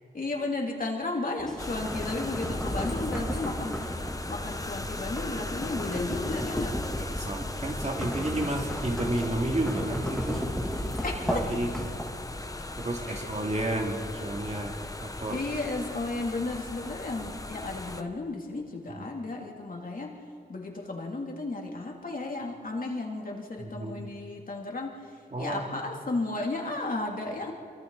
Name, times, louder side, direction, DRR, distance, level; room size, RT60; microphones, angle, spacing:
voice 1, 0.1-6.8 11.0-11.5 13.1-13.6 15.3-20.2 20.5-25.0 25.4-27.5, left 2 dB, 50° left, -1 dB, 3.2 m, -34 dB
sound 1, 1.4-12.4, equal, 5° left, 3.1 m, -34 dB
sound 2, 1.6-18.0, left 2 dB, 20° left, 1.0 m, -38 dB
voice 2, 7.0-10.4 11.2-11.7 12.8-15.4 19.0-19.1 23.6-24.1 25.3-25.6, right 1 dB, 40° right, 1 dB, 2.7 m, -31 dB
27.0 x 24.0 x 4.2 m, 2.4 s
wide cardioid pair, 100°, 18 cm